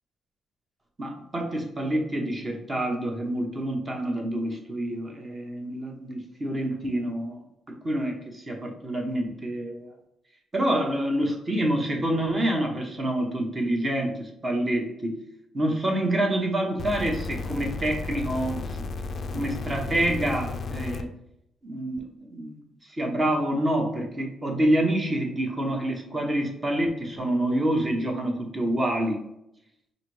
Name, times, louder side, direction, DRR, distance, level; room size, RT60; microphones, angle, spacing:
voice 1, 1.0-7.4 7.7-9.9 10.5-15.2 15.5-18.9 19.3-21.1 21.6-22.6 22.8-29.2, right 1 dB, 20° right, 2 dB, 0.8 m, -27 dB
sound 1, 16.8-21.0 22.0-22.1, left 3 dB, 40° left, 0.3 m, -33 dB
4.8 x 2.6 x 3.2 m, 0.79 s
cardioid pair, 145°, 0 cm